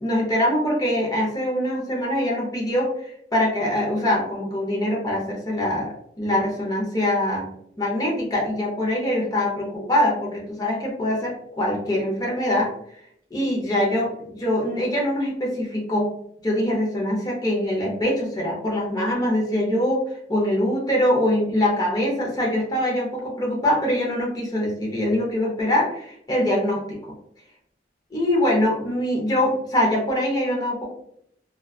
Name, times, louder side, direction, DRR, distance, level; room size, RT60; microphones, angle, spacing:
voice 1, 0.0-7.4 7.8-12.7 13.3-16.1 16.4-20.0 20.3-26.8 28.1-30.9, left 1 dB, 20° left, -3 dB, 0.6 m, -23 dB
2.6 x 2.2 x 2.3 m, 0.71 s
head